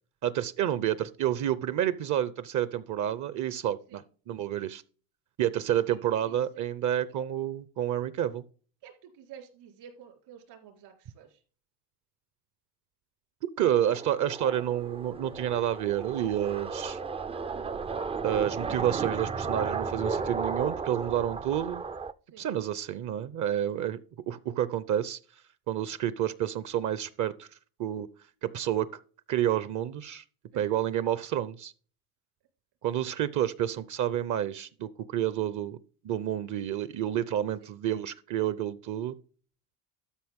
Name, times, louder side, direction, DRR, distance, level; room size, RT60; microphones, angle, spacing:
voice 1, 0.2-4.8 5.4-8.4 13.4-17.0 18.2-21.8 22.4-24.0 24.3-25.2 25.7-27.5 27.8-28.1 28.4-29.0 29.3-30.2 30.6-31.7 32.8-35.8 36.0-39.2, right 11 dB, 45° right, 15 dB, 0.7 m, -29 dB
voice 2, 5.7-6.7 8.8-11.4 22.3-22.5 30.5-30.7 33.7-33.9 37.6-37.7, right 9 dB, 70° right, 0 dB, 4.1 m, -52 dB
sound 1, 13.8-22.1, right 5 dB, 15° right, 0.4 m, -34 dB
13.0 x 5.8 x 3.6 m, 0.40 s
supercardioid pair, 105°, 42 cm